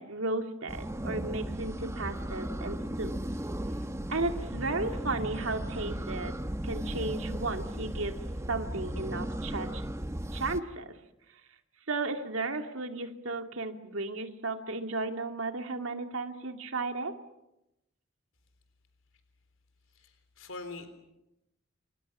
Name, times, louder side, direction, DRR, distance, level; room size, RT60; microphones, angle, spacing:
voice 1, 0.0-3.1 4.1-6.3 6.6-8.2 8.5-9.8 10.3-10.9 11.9-17.2, right 3 dB, 85° right, 5 dB, 2.4 m, -34 dB
sound 1, 0.7-10.6, right 1 dB, 15° right, 1.0 m, -36 dB
voice 2, 19.9-20.9, left 3 dB, 80° left, 8 dB, 3.8 m, -43 dB
30.0 x 28.0 x 6.2 m, 0.91 s
head